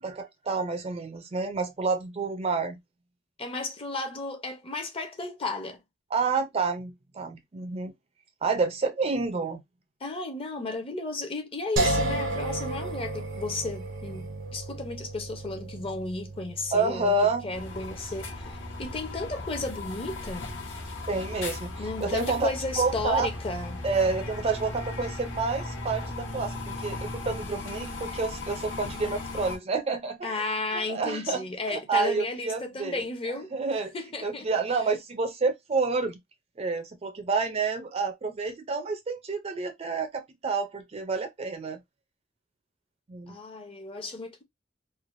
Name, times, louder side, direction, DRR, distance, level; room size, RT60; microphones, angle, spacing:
voice 1, 0.0-2.8 6.1-7.9 8.4-9.6 16.7-17.5 21.1-21.7 22.0-22.5 22.8-23.3 23.8-30.5 30.9-33.9 34.2-36.2 36.6-41.8 43.1-43.4, right 4 dB, 30° right, 0.5 m, -29 dB
voice 2, 3.4-5.8 10.0-18.5 18.8-20.5 21.8-23.8 30.2-33.5 33.9-34.5 43.3-44.4, left 3 dB, 30° left, 0.6 m, -34 dB
sound 1, 11.8-24.8, right 2 dB, 75° right, 0.7 m, -35 dB
sound 2, 17.5-29.6, left 2 dB, 80° left, 1.2 m, -37 dB
3.2 x 2.1 x 2.5 m
head